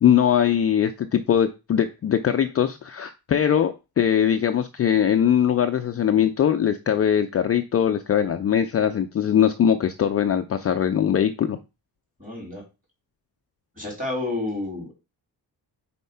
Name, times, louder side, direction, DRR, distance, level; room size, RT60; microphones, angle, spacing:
voice 1, 0.0-11.6, left 9 dB, 35° left, 7 dB, 0.4 m, -21 dB
voice 2, 12.2-12.6 13.7-14.9, left 2 dB, 20° right, -1 dB, 3.3 m, -30 dB
4.6 x 4.3 x 5.4 m, 0.27 s
wide cardioid pair, 165°, 41 cm